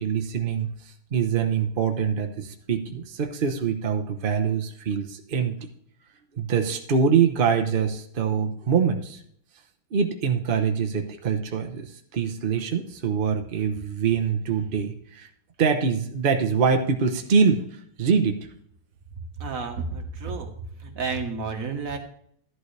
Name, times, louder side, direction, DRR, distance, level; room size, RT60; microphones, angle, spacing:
voice 1, 0.0-5.5 6.3-9.2 9.9-15.3 15.6-18.5, right 6 dB, 65° right, 5 dB, 0.5 m, -24 dB
voice 2, 19.4-20.5 20.8-22.0, right 4 dB, 45° right, 4 dB, 1.6 m, -31 dB
13.0 x 11.0 x 3.3 m, 0.66 s
omnidirectional pair, 2.4 m